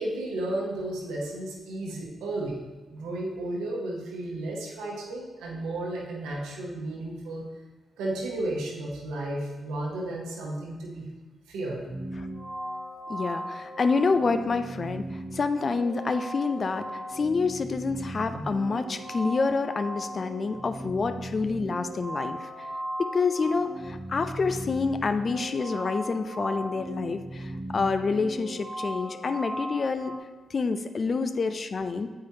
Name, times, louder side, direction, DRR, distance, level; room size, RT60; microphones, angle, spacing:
voice 1, 0.0-2.6 2.9-7.5 8.0-11.1 11.5-11.8 18.3-18.5, right 1 dB, 80° right, -1 dB, 1.0 m, -33 dB
sound 1, 11.9-30.2, right 1 dB, 20° right, 0.7 m, -37 dB
voice 2, 13.1-22.7 23.0-30.1 30.5-32.1, left 4 dB, 50° left, 9 dB, 0.4 m, -28 dB
7.7 x 4.7 x 2.8 m, 1.2 s
hypercardioid pair, 40°, 0 cm